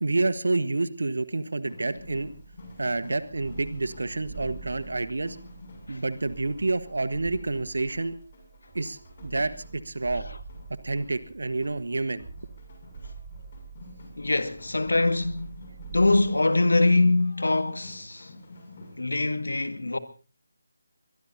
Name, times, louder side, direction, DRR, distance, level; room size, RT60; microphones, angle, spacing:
voice 1, 0.0-2.3 2.8-5.4 5.9-8.1 8.7-10.2 10.8-12.2, right 2 dB, 60° right, 1.4 m, -28 dB
sound 1, 1.6-19.0, left 2 dB, 35° left, 6.9 m, -50 dB
sound 2, 1.9-16.3, right 5 dB, 15° right, 7.6 m, -46 dB
voice 2, 14.2-15.6 15.9-18.3 19.0-20.0, left 2 dB, 65° left, 1.8 m, -23 dB
23.0 x 23.0 x 2.8 m
figure-of-eight pair, 155°, 0 cm